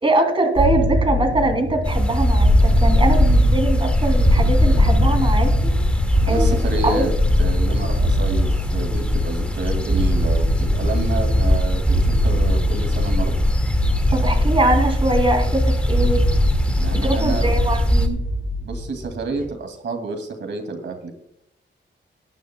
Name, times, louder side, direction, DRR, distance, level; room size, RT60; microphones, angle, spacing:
voice 1, 0.0-5.7 6.3-7.1 14.1-16.2 16.9-18.2, right 2 dB, 25° right, 4 dB, 2.5 m, -22 dB
sound 1, 0.6-19.5, right 1 dB, 45° right, 5.0 m, -25 dB
sound 2, 1.8-18.1, left 1 dB, 5° left, 1.8 m, -19 dB
voice 2, 6.2-7.1 7.4-13.4 16.8-17.5 18.6-21.1, right 3 dB, 70° right, 5 dB, 2.3 m, -29 dB
20.0 x 10.0 x 2.2 m, 0.76 s
wide cardioid pair, 120°, 20 cm